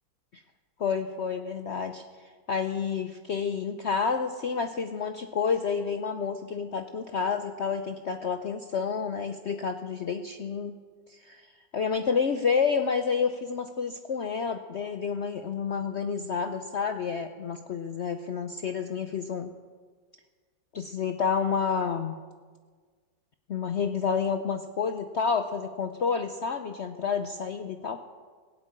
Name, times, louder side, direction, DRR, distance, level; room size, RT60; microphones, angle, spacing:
voice 1, 0.8-2.0 2.5-10.8 11.1-11.4 11.7-19.5 20.7-22.1 23.5-28.0, left 6 dB, 70° left, 7 dB, 0.6 m, -29 dB
17.5 x 8.3 x 8.8 m, 1.5 s
omnidirectional pair, 2.0 m